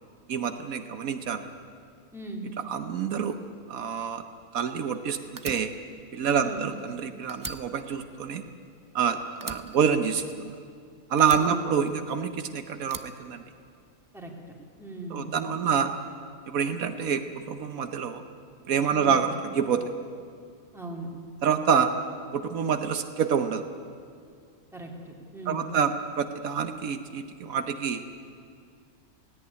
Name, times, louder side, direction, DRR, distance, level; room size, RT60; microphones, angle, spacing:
voice 1, 0.3-1.4 2.6-3.4 3.7-4.2 4.5-5.7 6.1-8.4 8.9-10.5 11.1-13.4 15.1-15.9 16.5-18.2 18.7-19.9 21.4-21.9 22.3-23.6 25.5-28.0, right 7 dB, 80° right, 8 dB, 1.3 m, -27 dB
voice 2, 2.1-2.4 6.4-6.7 11.4-11.7 14.1-14.3 14.8-15.4 18.9-19.2 20.7-21.1 24.7-25.7, right 2 dB, ahead, -1 dB, 2.8 m, -38 dB
Fire, 5.4-7.0 7.3-9.0 9.4-10.7 11.2-12.3 12.8-14.0, right 3 dB, 30° right, 0.4 m, -42 dB
17.0 x 17.0 x 9.5 m, 2.2 s
omnidirectional pair, 1.5 m